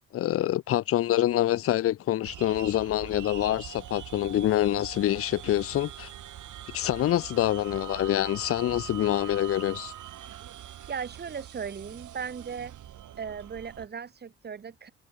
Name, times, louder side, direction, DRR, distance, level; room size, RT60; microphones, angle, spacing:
voice 1, 0.0-6.1 6.7-9.9, left 13 dB, 45° left, 0.4 m, -26 dB
sound 1, 2.2-13.9, right 11 dB, 65° right, 1.1 m, -43 dB
voice 2, 10.9-12.7 13.2-14.9, right 6 dB, 30° right, 0.7 m, -37 dB
hypercardioid pair, 45°, 34 cm